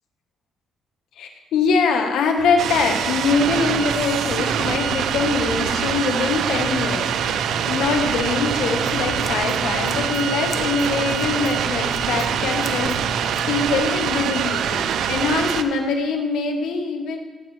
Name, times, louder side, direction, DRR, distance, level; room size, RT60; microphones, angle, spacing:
voice 1, 1.2-17.2, left 4 dB, 80° left, 4 dB, 1.2 m, -23 dB
sound 1, 2.4-9.2, left 2 dB, 40° right, 3.9 m, -39 dB
sound 2, 2.6-15.6, right 8 dB, 75° right, 0.5 m, -24 dB
Scissors, 8.4-13.8, left 4 dB, 65° left, 1.1 m, -36 dB
16.5 x 8.5 x 3.2 m, 1.3 s
cardioid pair, 90°, 0 cm